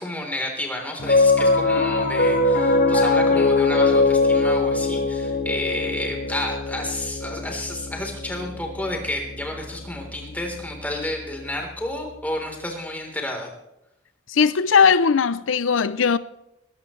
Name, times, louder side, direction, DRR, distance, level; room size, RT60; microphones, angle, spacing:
voice 1, 0.0-13.5, left 1 dB, 10° left, 3.7 m, -31 dB
Piano, 1.0-11.5, left 3 dB, 50° left, 3.0 m, -22 dB
voice 2, 14.3-16.2, left 6 dB, 85° left, 0.5 m, -18 dB
20.5 x 16.5 x 3.2 m
head